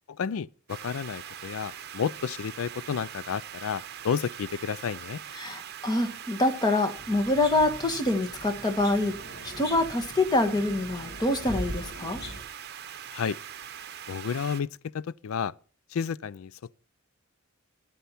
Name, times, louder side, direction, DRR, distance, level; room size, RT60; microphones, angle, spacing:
voice 1, 0.1-5.2 13.1-13.4 14.1-14.7 14.9-15.5 15.9-16.6, left 7 dB, 75° left, 0.4 m, -31 dB
sound 1, 0.7-14.6, right 9 dB, 50° right, 0.8 m, -42 dB
voice 2, 5.3-9.2 9.4-12.2, left 2 dB, 20° left, 1.5 m, -26 dB
sound 2, 7.0-12.4, equal, 50° left, 2.2 m, -41 dB
11.5 x 9.6 x 4.3 m
head